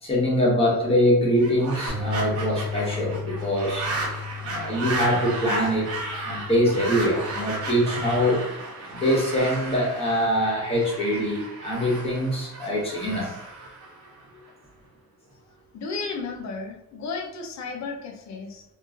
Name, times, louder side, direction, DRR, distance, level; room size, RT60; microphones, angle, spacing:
voice 1, 0.0-3.9 4.4-5.9 6.1-8.4 8.9-13.4, equal, 15° left, -4 dB, 1.0 m, -23 dB
sound 1, 1.3-14.5, right 2 dB, 45° right, 0.9 m, -34 dB
sound 2, 1.9-8.1, left 5 dB, 90° left, 1.2 m, -35 dB
voice 2, 15.7-18.6, left 4 dB, 55° left, 2 dB, 0.7 m, -33 dB
3.0 x 2.6 x 2.4 m, 0.90 s
cardioid pair, 145°, 33 cm